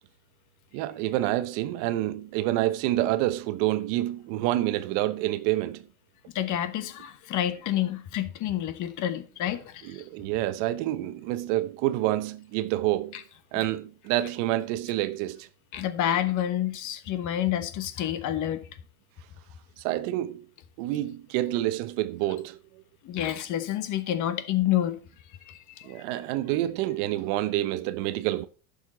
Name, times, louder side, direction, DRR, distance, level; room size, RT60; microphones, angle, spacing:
voice 1, 0.7-5.9 9.8-13.2 13.5-15.5 19.8-20.5 20.8-22.6 25.8-28.5, right 15 dB, 60° right, 0.9 m, -28 dB
voice 2, 6.3-10.0 15.7-18.6 23.0-25.0 25.5-26.0, left 11 dB, 40° left, 1.2 m, -28 dB
11.0 x 6.7 x 3.9 m
supercardioid pair, 120°, 44 cm